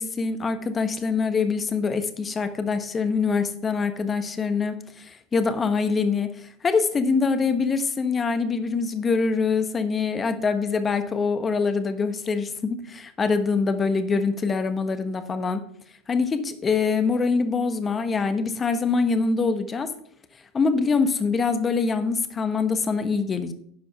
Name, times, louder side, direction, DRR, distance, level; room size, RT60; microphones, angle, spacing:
voice 1, 0.0-15.6 16.1-19.9 20.5-23.5, left 4 dB, 25° left, 9 dB, 1.2 m, -24 dB
11.0 x 5.0 x 5.8 m, 0.66 s
hypercardioid pair, 90°, 0 cm